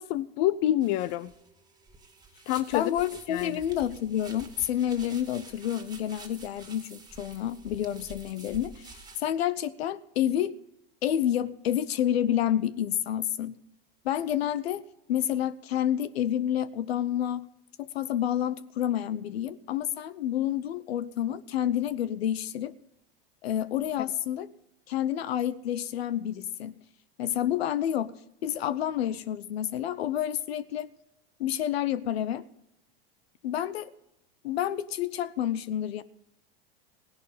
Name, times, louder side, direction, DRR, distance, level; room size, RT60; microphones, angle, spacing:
voice 1, 0.0-1.3 2.5-2.9 3.3-3.6, left 13 dB, 50° left, 18 dB, 0.6 m, -27 dB
sound 1, 0.8-9.3, right 3 dB, 15° right, 2.2 m, -49 dB
voice 2, 2.7-8.8 9.2-10.6 11.0-13.5 14.0-14.8 15.1-17.5 17.8-22.7 23.4-24.5 24.9-26.7 27.2-28.1 28.4-30.9 31.4-32.4 33.4-33.9 34.4-36.0, left 11 dB, 80° left, 17 dB, 0.9 m, -29 dB
16.5 x 11.0 x 5.1 m, 0.80 s
hypercardioid pair, 100°, 31 cm